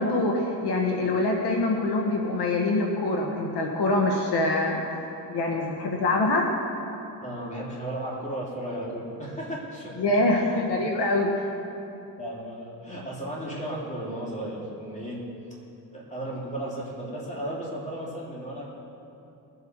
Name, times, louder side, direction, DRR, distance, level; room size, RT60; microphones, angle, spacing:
voice 1, 0.0-4.8 5.3-6.5 10.0-11.3, left 2 dB, 70° left, 0 dB, 1.6 m, -24 dB
voice 2, 7.2-10.8 12.2-15.2 15.9-18.7, right 1 dB, 15° left, -5 dB, 3.4 m, -35 dB
21.0 x 8.1 x 4.7 m, 2.8 s
cardioid pair, 120°, 42 cm